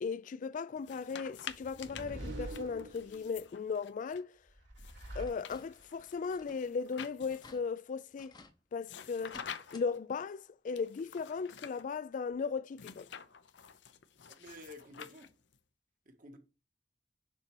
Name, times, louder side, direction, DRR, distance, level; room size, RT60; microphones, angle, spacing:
voice 1, 0.0-4.3 5.2-8.3 8.7-9.4 9.7-13.1, left 5 dB, 45° left, 0.3 m, -37 dB
sound 1, 0.8-4.2 4.8-7.7 8.8-10.0 10.8-11.8 12.7-15.6, left 7 dB, 80° left, 0.6 m, -49 dB
sound 2, 1.5-3.5 4.5-6.0, right 1 dB, 80° right, 3.3 m, -45 dB
sound 3, 5.2-5.9 6.2-6.7 7.0-7.1 7.3-7.6 8.2-8.6 9.2-9.9 10.2-10.3 11.7-11.8 12.3-12.4, left 3 dB, 25° left, 0.7 m, -56 dB
voice 2, 14.3-15.3 16.0-16.4, left 1 dB, 50° right, 1.5 m, -51 dB
6.8 x 4.2 x 6.0 m
head